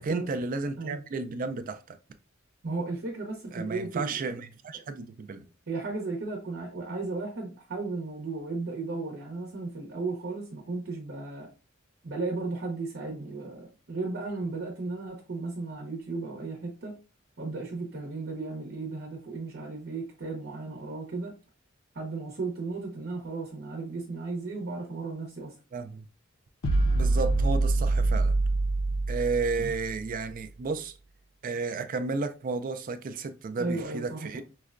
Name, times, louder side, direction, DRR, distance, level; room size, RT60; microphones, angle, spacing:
voice 1, 0.0-2.0 3.5-5.5 25.7-26.0 26.9-28.4 29.1-30.9 31.4-34.4, right 4 dB, 40° right, 0.4 m, -32 dB
voice 2, 2.6-4.2 4.7-4.8 5.7-11.5 12.0-17.0 17.4-21.3 21.9-25.5 33.6-34.4, right 3 dB, 60° right, 0.8 m, -35 dB
sound 1, 26.6-30.1, right 2 dB, 80° left, 0.5 m, -25 dB
4.7 x 2.1 x 2.4 m
head